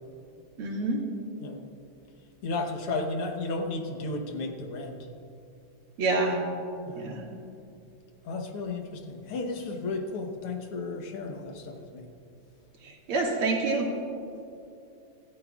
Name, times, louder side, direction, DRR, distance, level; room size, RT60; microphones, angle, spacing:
voice 1, 0.6-1.0 6.0-6.4 6.9-7.3 12.8-13.9, right 3 dB, 85° right, -1 dB, 2.9 m, -27 dB
voice 2, 2.4-5.0 6.9-7.2 8.2-12.1, left 3 dB, 85° left, 4 dB, 2.1 m, -33 dB
26.0 x 13.0 x 2.4 m, 2.7 s
omnidirectional pair, 2.4 m